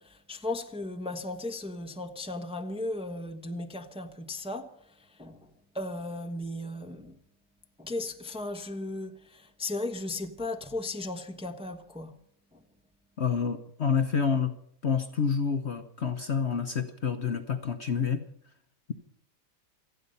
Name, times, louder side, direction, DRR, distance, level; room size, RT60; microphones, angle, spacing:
voice 1, 0.0-5.5 5.7-7.1 7.8-12.1 12.5-12.6, left 2 dB, 5° right, 0.9 m, -36 dB
voice 2, 13.2-14.5 14.8-18.2, left 6 dB, 45° left, 1.1 m, -28 dB
27.5 x 9.4 x 5.5 m
omnidirectional pair, 1.8 m